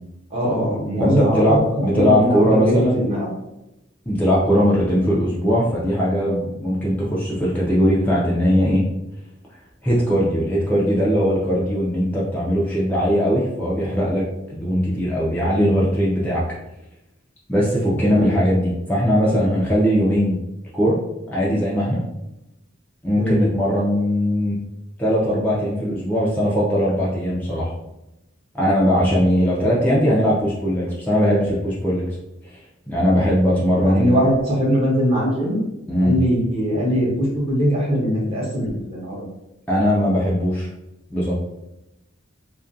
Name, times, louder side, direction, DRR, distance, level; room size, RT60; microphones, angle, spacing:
voice 1, 0.3-3.3 17.9-18.3 23.1-23.4 29.6-29.7 33.8-35.6 36.0-39.2, equal, 30° right, -5 dB, 0.8 m, -21 dB
voice 2, 1.0-3.0 4.1-8.8 9.8-14.2 14.5-16.4 17.5-20.4 20.7-21.0 21.3-22.0 23.0-24.6 25.0-27.7 28.5-32.1 32.4-32.6 32.9-34.1 35.9-36.1 39.7-40.7 41.1-41.3, equal, 10° left, -7 dB, 0.4 m, -19 dB
2.4 x 2.2 x 2.5 m, 0.92 s
head